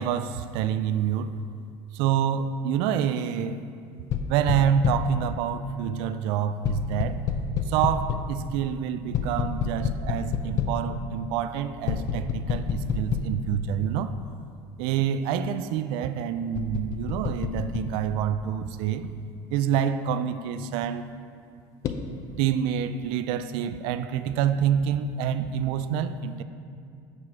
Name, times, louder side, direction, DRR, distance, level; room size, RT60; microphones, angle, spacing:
voice 1, 0.0-1.3 1.9-3.6 4.3-7.2 7.7-14.1 14.8-19.1 19.5-21.1 22.4-26.4, right 8 dB, 55° right, 0.3 m, -27 dB
sound 1, 4.1-5.2 6.6-8.4 9.1-10.9 11.9-13.5 14.1-14.2 16.5-17.9 21.8-22.0, left 6 dB, 30° left, 0.4 m, -28 dB
7.3 x 6.2 x 4.8 m
cardioid pair, 175°, 11 cm